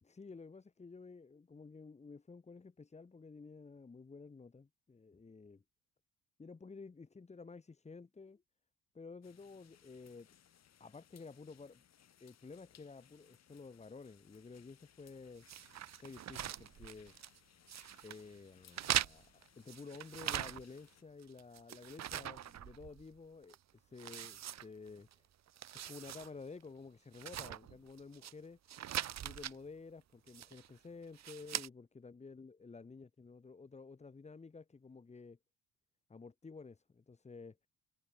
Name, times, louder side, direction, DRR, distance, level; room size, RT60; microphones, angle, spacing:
voice 1, 0.0-5.6 6.4-8.4 8.9-10.3 10.8-11.8 12.2-15.4 16.0-17.2 18.0-25.3 25.8-28.6 29.2-35.4 36.1-37.6, left 4 dB, 20° left, 2.7 m, -52 dB
sound 1, 9.2-21.0, left 9 dB, 45° left, 3.2 m, -66 dB
sound 2, 15.5-17.4 17.7-18.2 18.7-20.9 21.2-23.1 23.5-23.6 24.0-25.1 25.5-26.3 26.6-26.7 27.1-28.3 28.7-29.6 30.3-30.7 31.1-31.7, right 11 dB, 45° right, 1.3 m, -41 dB
cardioid pair, 170°, 36 cm